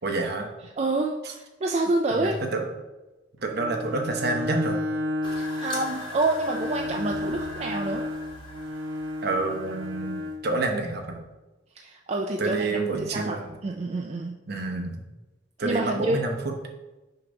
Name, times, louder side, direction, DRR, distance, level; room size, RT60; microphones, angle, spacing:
voice 1, 0.0-0.5 2.2-2.6 3.4-4.8 9.2-11.2 12.4-13.5 14.5-15.0 15.6-16.3, right 3 dB, 60° right, 3 dB, 0.9 m, -28 dB
voice 2, 0.8-2.4 5.4-8.1 11.8-13.4 13.6-14.4 15.6-16.2, right 2 dB, 35° right, 1 dB, 0.4 m, -28 dB
Bowed string instrument, 3.4-10.5, left 1 dB, 90° right, 0.6 m, -33 dB
sound 1, 5.2-10.3, left 3 dB, 25° left, 1.3 m, -41 dB
6.5 x 3.0 x 5.1 m, 1.1 s
head